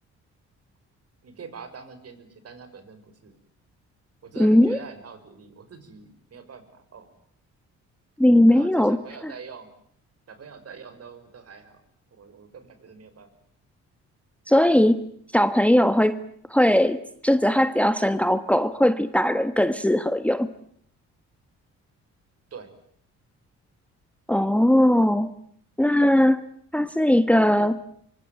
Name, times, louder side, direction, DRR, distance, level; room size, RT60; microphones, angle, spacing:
voice 1, 1.2-3.4 4.2-7.1 8.5-9.7 10.3-11.9 12.1-13.3 22.5-22.7, right 5 dB, 55° right, 10 dB, 6.0 m, -44 dB
voice 2, 4.4-4.8 8.2-9.3 14.5-15.1 15.3-16.2 16.5-20.5 24.3-25.3 25.8-26.4 26.7-27.8, left 1 dB, 5° left, 11 dB, 1.4 m, -19 dB
25.0 x 24.5 x 9.3 m, 0.67 s
cardioid pair, 90°, 30 cm